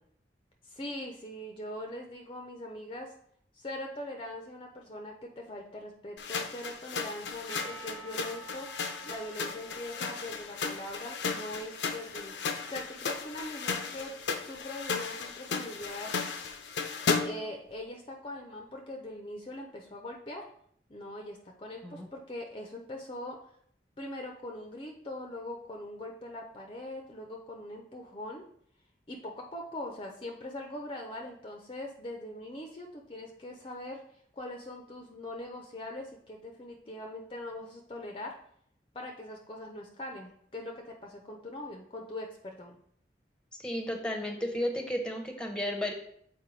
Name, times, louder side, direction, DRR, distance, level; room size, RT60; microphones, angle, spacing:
voice 1, 0.6-3.1 3.5-8.7 9.1-12.4 12.7-14.1 14.4-16.1 17.2-20.4 20.9-23.4 24.0-28.4 29.1-34.0 34.3-38.3 38.9-42.8, left 1 dB, 30° left, 2 dB, 0.6 m, -41 dB
sound 1, 6.2-17.5, left 5 dB, 85° left, 0.6 m, -35 dB
Percussion, 7.5-11.4, right 2 dB, 60° right, 0.9 m, -49 dB
voice 2, 43.5-45.9, equal, 5° left, 3 dB, 0.8 m, -33 dB
7.4 x 4.3 x 3.2 m, 0.66 s
head